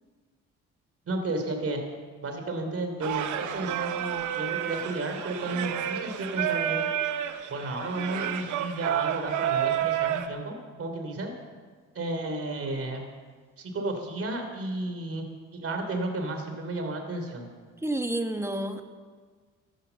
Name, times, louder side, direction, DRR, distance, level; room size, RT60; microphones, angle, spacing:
voice 1, 1.1-1.8 2.2-6.9 7.5-11.3 11.9-13.1 13.6-15.3 15.5-17.5, right 2 dB, 50° right, 5 dB, 3.1 m, -32 dB
Singing, 3.0-10.3, right 11 dB, 75° right, 1.1 m, -30 dB
voice 2, 17.8-18.8, right 1 dB, 10° right, 6 dB, 1.4 m, -29 dB
15.0 x 11.5 x 6.9 m, 1.5 s
cardioid pair, 90°, 30 cm